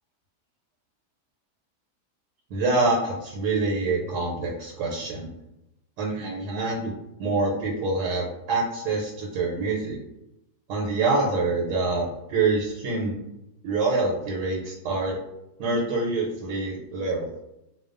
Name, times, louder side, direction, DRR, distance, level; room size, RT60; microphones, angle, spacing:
voice 1, 2.5-5.3 6.0-10.0 10.7-13.2 13.6-15.2 15.6-17.3, right 3 dB, 85° right, -2 dB, 1.2 m, -26 dB
2.6 x 2.2 x 2.4 m, 0.88 s
omnidirectional pair, 1.7 m